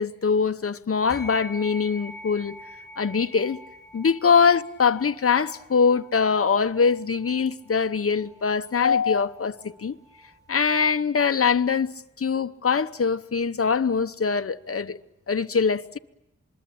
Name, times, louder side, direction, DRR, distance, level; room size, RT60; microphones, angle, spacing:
voice 1, 0.0-2.6 3.0-3.6 3.9-10.0 10.5-11.9 12.2-15.0 15.3-16.0, left 5 dB, 50° left, 0.9 m, -23 dB
sound 1, 1.1-10.8, left 1 dB, 10° left, 6.9 m, -45 dB
27.0 x 21.5 x 8.6 m
cardioid pair, 50°, 30 cm